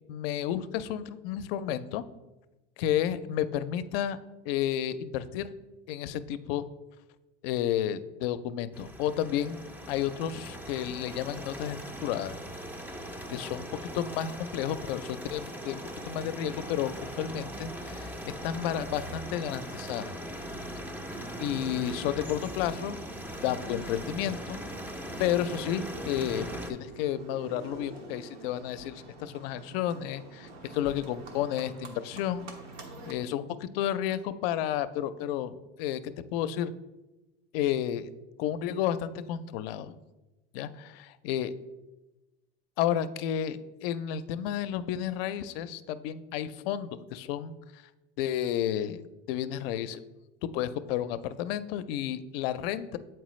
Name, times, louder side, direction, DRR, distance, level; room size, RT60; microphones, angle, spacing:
voice 1, 0.1-2.0 2.8-4.2 4.5-5.5 5.9-6.7 7.4-12.4 13.3-18.1 18.4-20.1 21.4-23.0 23.4-24.6 25.2-32.5 33.1-36.0 36.3-36.7 37.5-38.1 38.4-40.0 40.5-41.5 42.8-47.8 48.2-49.0 49.3-50.0 50.4-53.0, left 10 dB, 75° left, 14 dB, 0.5 m, -31 dB
sound 1, 8.7-26.7, equal, 5° right, 0.4 m, -40 dB
Livestock farm animals working animals, 25.1-33.1, right 3 dB, 90° right, 1.1 m, -47 dB
7.4 x 4.5 x 3.1 m, 1.1 s
supercardioid pair, 115°, 30 cm